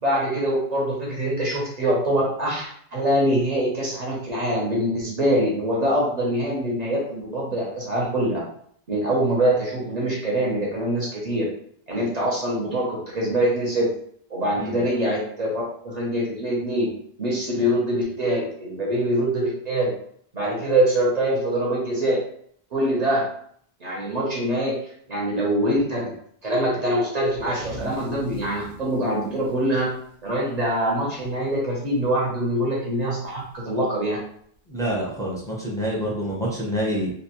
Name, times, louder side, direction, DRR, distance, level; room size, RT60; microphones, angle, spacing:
voice 1, 0.0-8.4 8.9-11.4 11.9-13.9 14.3-16.9 17.2-19.9 20.3-22.2 22.7-23.3 23.8-24.8 25.1-26.1 26.4-29.9 30.2-34.2, right 1 dB, 45° right, -4 dB, 0.7 m, -24 dB
sound 1, 27.3-31.0 31.3-31.5 31.8-32.3 33.4-33.5 34.6-34.7, equal, 80° right, 0.8 m, -41 dB
voice 2, 34.7-37.1, equal, 5° left, -5 dB, 0.5 m, -27 dB
2.5 x 2.1 x 2.9 m, 0.64 s
omnidirectional pair, 1.0 m